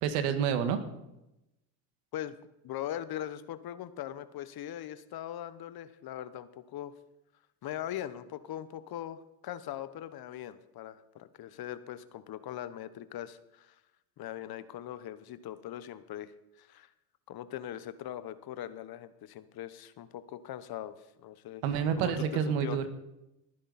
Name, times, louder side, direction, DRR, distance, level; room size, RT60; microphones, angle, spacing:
voice 1, 0.0-0.8 21.6-22.9, right 7 dB, 80° right, 8 dB, 1.8 m, -28 dB
voice 2, 2.6-6.9 7.6-13.7 14.2-16.3 16.6-16.9 17.3-21.6 22.0-22.9, left 11 dB, 55° left, 13 dB, 1.1 m, -41 dB
19.5 x 10.0 x 4.2 m, 0.91 s
supercardioid pair, 80°, 45 cm